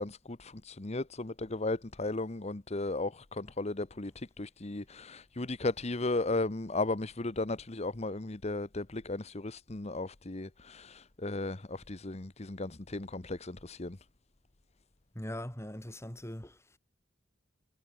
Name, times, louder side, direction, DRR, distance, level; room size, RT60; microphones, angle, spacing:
voice 1, 0.0-14.0, left 2 dB, 35° left, 1.1 m, -35 dB
voice 2, 15.1-16.6, left 1 dB, 15° left, 3.1 m, -41 dB
head